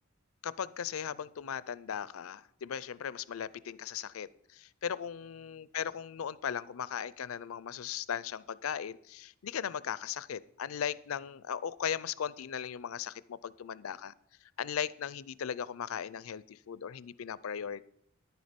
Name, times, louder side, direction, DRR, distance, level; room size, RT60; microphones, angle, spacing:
voice 1, 0.4-14.1 14.6-17.9, left 8 dB, 75° left, 0.4 m, -38 dB
11.0 x 9.4 x 5.2 m
head